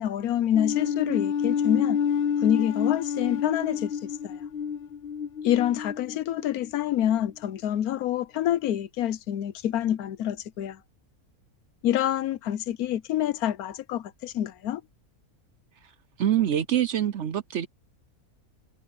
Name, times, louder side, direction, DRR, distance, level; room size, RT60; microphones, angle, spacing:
voice 1, 0.0-2.0 2.4-4.4 5.4-10.8 11.8-14.8, left 11 dB, 75° left, 1.2 m, -27 dB
sound 1, 0.5-6.9, left 7 dB, 55° left, 0.7 m, -29 dB
voice 2, 16.2-17.7, right 10 dB, 60° right, 0.9 m, -25 dB
omnidirectional pair, 1.6 m